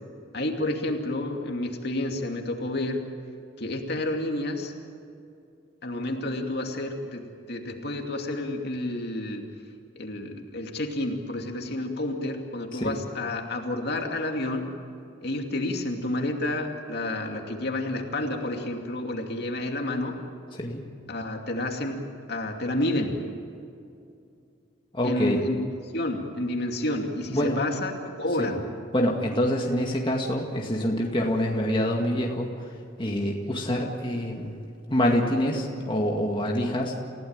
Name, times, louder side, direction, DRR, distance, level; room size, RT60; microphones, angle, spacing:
voice 1, 0.3-3.0 3.6-4.7 5.8-9.5 10.0-14.7 15.2-20.2 21.1-22.0 22.3-23.2 25.0-25.6 25.9-27.9 28.2-28.6, left 1 dB, 55° left, 2 dB, 2.6 m, -30 dB
voice 2, 24.9-25.4 27.3-27.6 28.4-28.5 28.9-32.7 33.0-34.6 34.9-36.9, equal, 25° left, 0 dB, 2.1 m, -26 dB
29.5 x 16.5 x 8.9 m, 2.5 s
head